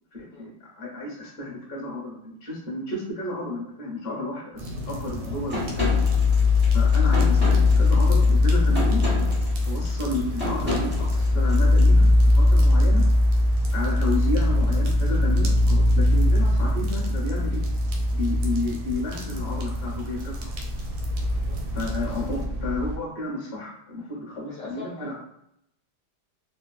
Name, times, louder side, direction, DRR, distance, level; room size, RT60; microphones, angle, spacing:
voice 1, 0.1-6.1 6.7-9.0 9.7-12.1 12.3-13.0 13.7-17.6 18.1-20.5 21.7-25.1, left 2 dB, 40° left, -4 dB, 0.9 m, -32 dB
sound 1, 4.6-22.5, equal, 90° right, 1.5 m, -38 dB
voice 2, 5.2-5.5 21.3-21.5 24.4-25.1, left 5 dB, 70° left, -5 dB, 1.1 m, -43 dB
sound 2, 5.5-11.8, left 1 dB, 15° right, 0.4 m, -32 dB
sound 3, 5.7-23.0, left 2 dB, 65° right, 0.7 m, -21 dB
3.2 x 2.2 x 2.3 m, 0.76 s
omnidirectional pair, 2.3 m